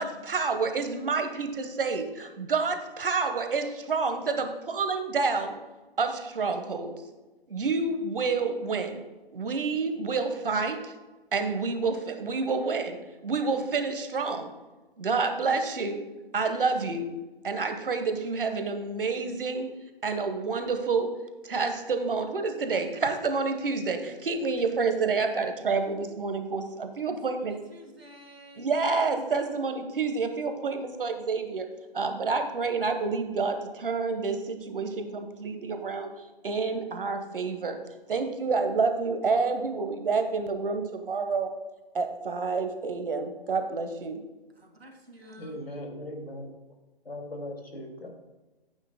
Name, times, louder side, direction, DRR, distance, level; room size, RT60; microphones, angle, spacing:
voice 1, 0.0-5.6 6.0-6.9 7.5-9.0 9.3-10.9 11.3-13.0 13.2-14.5 15.0-16.0 16.3-17.1 17.4-19.7 20.0-21.1 21.4-27.5 28.6-31.7 31.9-36.1 36.4-37.8 38.1-41.5 41.9-44.2, right 4 dB, 65° right, 6 dB, 1.4 m, -28 dB
voice 2, 27.1-28.7 44.5-45.6, equal, 80° right, 3 dB, 1.9 m, -50 dB
voice 3, 45.4-46.5 47.1-48.1, left 1 dB, 75° left, 2 dB, 2.3 m, -38 dB
14.0 x 8.9 x 2.2 m, 1.2 s
figure-of-eight pair, 130°, 30 cm